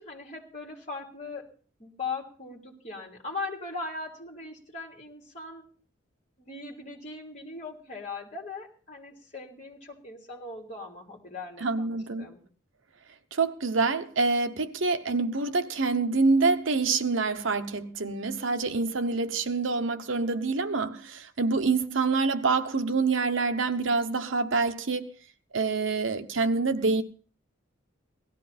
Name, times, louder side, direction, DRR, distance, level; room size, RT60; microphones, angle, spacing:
voice 1, 0.0-1.5 1.8-5.6 6.4-12.4, left 3 dB, 35° left, 3.3 m, -39 dB
voice 2, 11.6-12.3 13.3-25.1 25.5-27.0, right 4 dB, 70° right, 1.0 m, -26 dB
18.0 x 13.5 x 4.3 m
head